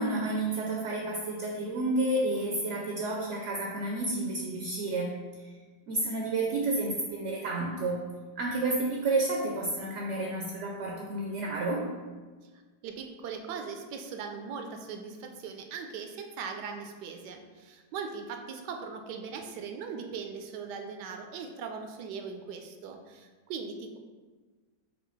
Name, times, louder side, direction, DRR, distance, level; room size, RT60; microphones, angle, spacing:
voice 1, 0.0-5.2 5.9-8.0 8.4-11.9, right 2 dB, 70° right, 0 dB, 0.7 m, -30 dB
voice 2, 12.8-24.0, right 5 dB, 85° right, 5 dB, 1.2 m, -39 dB
5.5 x 2.5 x 3.9 m, 1.4 s
omnidirectional pair, 1.8 m